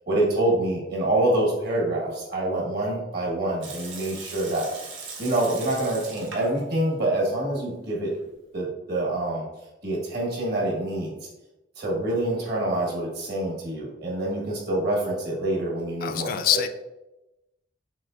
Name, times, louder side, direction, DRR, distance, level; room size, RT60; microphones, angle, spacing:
voice 1, 0.1-4.7 5.2-8.1 8.5-9.4 9.8-11.1 11.8-16.3, right 1 dB, 55° right, -2 dB, 1.5 m, -26 dB
Water tap faucet / Sink (filling or washing) / Liquid, 3.6-6.6 6.9-7.0 7.7-8.3, right 4 dB, 80° right, 1.2 m, -40 dB
voice 2, 16.0-16.7, left 10 dB, 50° left, 8 dB, 0.3 m, -24 dB
6.6 x 3.1 x 2.5 m, 0.97 s
head